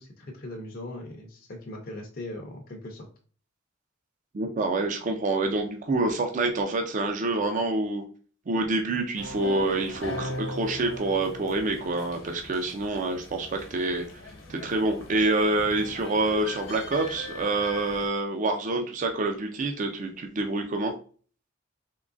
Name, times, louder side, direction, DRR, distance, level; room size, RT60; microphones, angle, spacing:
voice 1, 0.0-3.1, left 1 dB, 45° left, 1 dB, 0.6 m, -39 dB
voice 2, 4.3-8.0 8.5-14.0 14.5-20.9, right 2 dB, 40° right, 4 dB, 0.4 m, -27 dB
sound 1, 9.1-18.1, left 1 dB, 65° left, 1.0 m, -40 dB
3.7 x 3.0 x 2.4 m, 0.42 s
head